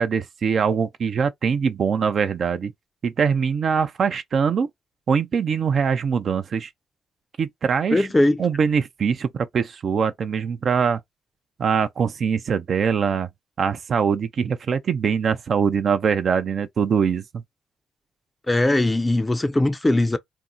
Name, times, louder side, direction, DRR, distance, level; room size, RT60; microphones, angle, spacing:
voice 1, 0.0-2.7 3.0-4.7 5.1-6.7 7.4-8.1 8.4-11.0 11.6-13.3 13.6-17.4, right 6 dB, 50° right, 0.5 m, -22 dB
voice 2, 7.9-8.4 18.5-20.2, left 1 dB, 15° left, 0.5 m, -20 dB
2.7 x 2.0 x 3.7 m
supercardioid pair, 80°, 0 cm